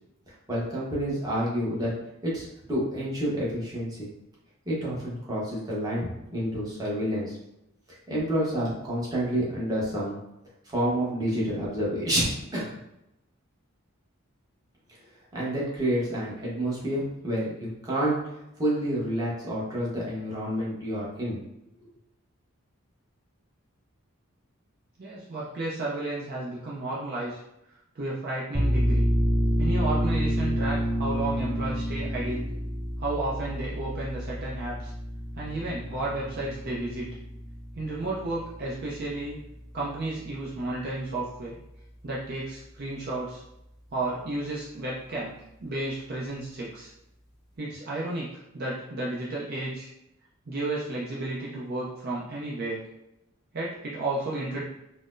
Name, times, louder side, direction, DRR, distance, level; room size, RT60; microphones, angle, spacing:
voice 1, 0.5-1.9 2.2-4.1 4.7-7.4 8.1-10.2 10.7-12.2 12.5-12.7 15.3-18.2 18.6-21.4, equal, 15° right, -7 dB, 0.9 m, -29 dB
voice 2, 25.0-27.4 28.0-29.1 29.6-32.5 33.0-34.9 35.3-37.1 37.8-39.4 39.7-41.6 42.0-43.4 43.9-46.9 47.6-49.9 50.5-52.8 53.5-54.6, right 2 dB, 45° right, -6 dB, 0.5 m, -32 dB
sound 1, 28.5-39.8, equal, 5° left, 0.4 m, -29 dB
4.0 x 2.0 x 2.5 m, 0.86 s
head